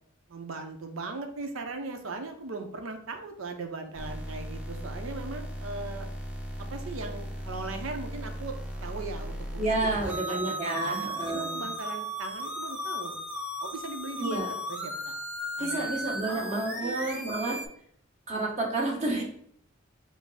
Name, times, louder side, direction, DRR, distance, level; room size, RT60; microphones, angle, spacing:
voice 1, 0.3-6.1 6.6-13.2 13.6-14.4 14.7-15.1 15.6-16.0 16.3-17.2, right 3 dB, 90° right, 5 dB, 0.6 m, -39 dB
sound 1, 3.9-17.7, equal, 5° right, 0.7 m, -36 dB
voice 2, 9.6-11.6 14.2-14.5 15.6-17.6 18.3-19.2, right 2 dB, 35° right, -3 dB, 1.2 m, -30 dB
5.3 x 2.0 x 4.8 m, 0.65 s
head